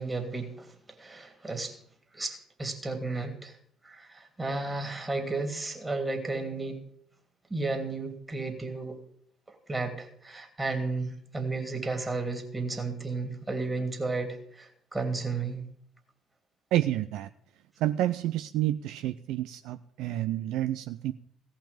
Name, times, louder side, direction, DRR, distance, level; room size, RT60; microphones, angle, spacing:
voice 1, 0.0-1.8 2.1-3.6 3.8-6.8 7.5-9.0 9.5-15.7, right 3 dB, 20° right, 5 dB, 2.8 m, -33 dB
voice 2, 16.7-17.3 17.8-21.1, right 13 dB, 60° right, 11 dB, 0.4 m, -29 dB
16.5 x 5.9 x 8.5 m, 0.66 s
figure-of-eight pair, 50°, 0 cm